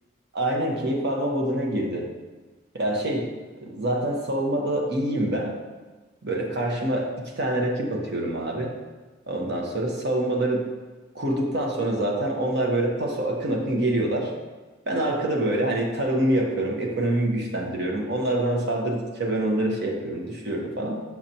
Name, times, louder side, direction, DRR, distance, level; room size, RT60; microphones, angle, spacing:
voice 1, 0.3-2.1 2.7-3.3 3.6-5.5 6.2-8.8 9.3-10.7 11.1-14.3 14.9-21.0, right 1 dB, 60° right, 0 dB, 1.0 m, -26 dB
6.5 x 5.8 x 2.9 m, 1.2 s
head